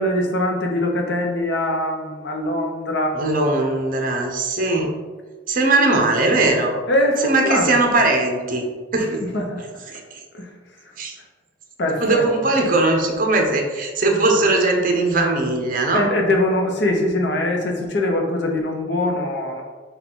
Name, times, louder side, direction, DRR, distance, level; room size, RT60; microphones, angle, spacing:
voice 1, 0.0-3.2 6.9-7.9 9.3-9.6 10.3-10.5 11.8-12.3 15.9-19.6, left 1 dB, 60° left, 2 dB, 0.8 m, -22 dB
voice 2, 3.1-4.9 5.5-6.7 7.2-8.6 8.9-9.2 9.9-10.0 11.0-11.1 12.0-16.0, right 2 dB, 45° right, 3 dB, 0.7 m, -19 dB
5.8 x 2.4 x 3.8 m, 1.4 s
head